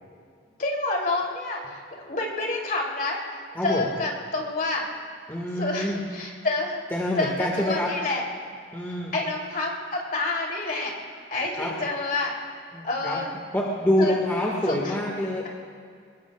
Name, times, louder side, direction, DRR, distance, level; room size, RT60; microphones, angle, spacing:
voice 1, 0.6-3.2 3.6-4.8 5.6-6.8 7.2-8.2 9.1-10.9 11.3-12.3 12.8-13.3 14.0-14.1 14.7-15.0, left 2 dB, 45° left, -1 dB, 3.0 m, -28 dB
voice 2, 3.5-3.9 5.3-6.0 6.9-7.9 8.7-9.1 11.5-11.7 12.7-13.2 13.5-15.5, left 1 dB, 10° left, -3 dB, 1.7 m, -26 dB
22.0 x 20.5 x 2.4 m, 2.2 s
head